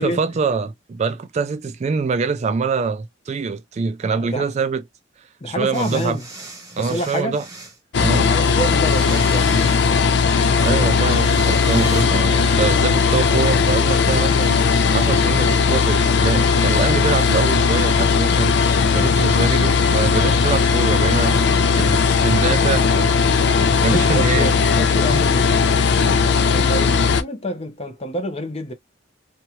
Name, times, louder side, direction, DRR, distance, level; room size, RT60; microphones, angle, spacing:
voice 1, 0.0-4.8 5.5-6.2 6.8-7.4 8.0-8.3 10.6-14.6 14.9-18.5 18.9-21.4 21.8-23.1 23.8-24.5, right 4 dB, 35° right, 0.3 m, -24 dB
voice 2, 4.1-4.5 5.4-6.2 6.8-7.4 8.1-9.7 21.2-22.1 22.4-22.7 23.7-28.7, equal, 35° left, 0.7 m, -28 dB
sound 1, 5.7-7.8 8.6-10.3 10.9-12.1, right 2 dB, 20° right, 0.9 m, -38 dB
sound 2, 7.9-27.2, left 5 dB, 65° left, 0.5 m, -17 dB
2.8 x 2.3 x 2.9 m
head